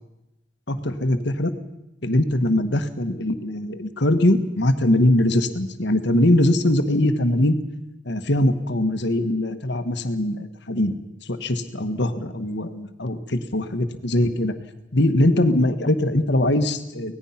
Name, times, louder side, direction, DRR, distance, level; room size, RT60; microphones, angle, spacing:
voice 1, 0.7-1.5 2.0-7.6 8.0-10.9 11.2-14.5 14.9-17.2, left 1 dB, 60° left, 9 dB, 1.5 m, -21 dB
24.5 x 18.5 x 5.9 m, 0.92 s
head